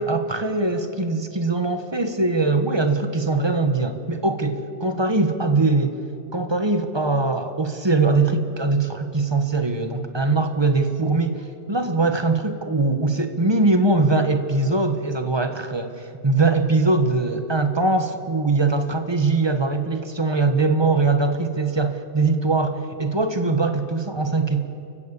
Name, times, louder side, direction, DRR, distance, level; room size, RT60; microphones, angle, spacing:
voice 1, 0.0-6.0 6.3-24.7, right 3 dB, 25° right, 8 dB, 1.3 m, -22 dB
29.0 x 16.0 x 6.9 m, 2.6 s
omnidirectional pair, 1.2 m